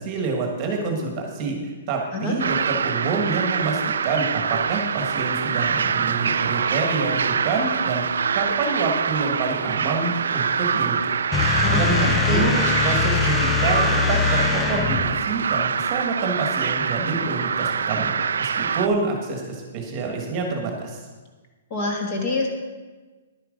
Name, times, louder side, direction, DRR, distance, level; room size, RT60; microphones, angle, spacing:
voice 1, 0.0-8.0 8.3-11.1 11.4-21.0, right 4 dB, 20° right, 1 dB, 1.4 m, -27 dB
sound 1, 2.4-18.9, right 6 dB, 90° right, 0.4 m, -25 dB
sound 2, 11.3-15.2, left 7 dB, 10° left, 0.3 m, -23 dB
voice 2, 11.6-12.5 21.7-22.5, left 2 dB, 25° left, 1 dB, 1.4 m, -26 dB
10.5 x 8.9 x 5.1 m, 1.3 s
hypercardioid pair, 180°, 0 cm